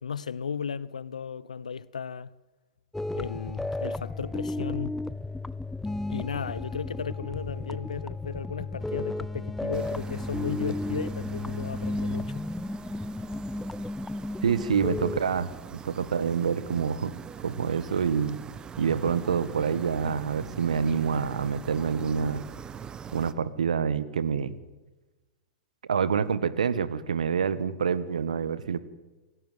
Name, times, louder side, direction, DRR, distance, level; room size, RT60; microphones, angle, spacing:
voice 1, 0.0-2.3 3.1-5.0 6.1-12.4, left 6 dB, 80° left, 1.0 m, -35 dB
sound 1, 2.9-15.2, left 2 dB, 5° left, 0.7 m, -33 dB
sound 2, 9.7-23.3, right 7 dB, 20° right, 1.3 m, -43 dB
voice 2, 14.4-17.1 17.4-18.4 18.8-22.4 23.1-24.5 25.9-28.8, right 6 dB, 75° right, 1.6 m, -27 dB
27.5 x 18.0 x 9.4 m
figure-of-eight pair, 100°, 4 cm